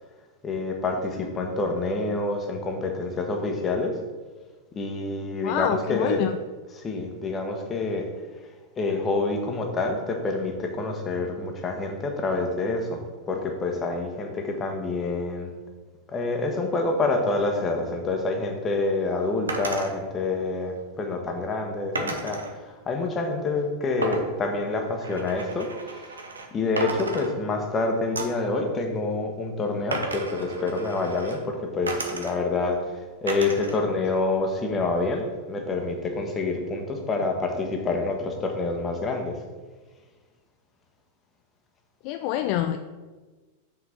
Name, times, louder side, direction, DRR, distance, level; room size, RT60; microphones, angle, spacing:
voice 1, 0.4-4.0 4.7-6.3 6.7-8.1 8.8-13.0 13.3-15.5 16.1-26.0 26.5-39.4, left 3 dB, 20° left, 3 dB, 1.3 m, -27 dB
voice 2, 5.4-6.3 42.0-42.8, left 11 dB, 45° left, 8 dB, 0.3 m, -26 dB
sound 1, 19.5-19.9 21.9-22.5 24.0-26.5 26.8-27.7 28.2-28.5 29.9-31.4 31.9-32.6 33.3-33.8 34.2-34.9, right 2 dB, 75° right, 0.9 m, -34 dB
6.1 x 4.6 x 5.9 m, 1.3 s
figure-of-eight pair, 90°, 0 cm